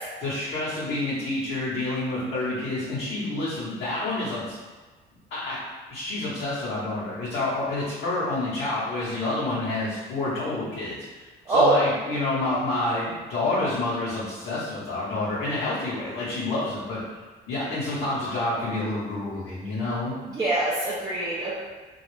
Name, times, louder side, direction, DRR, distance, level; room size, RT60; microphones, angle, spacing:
voice 1, 0.2-4.6 5.3-5.6 5.9-17.0 17.5-20.1, left 2 dB, 65° left, -11 dB, 0.8 m, -28 dB
voice 2, 11.5-11.8 20.3-21.6, right 2 dB, 20° right, -7 dB, 0.4 m, -23 dB
2.3 x 2.0 x 3.0 m, 1.3 s
cardioid pair, 155°, 18 cm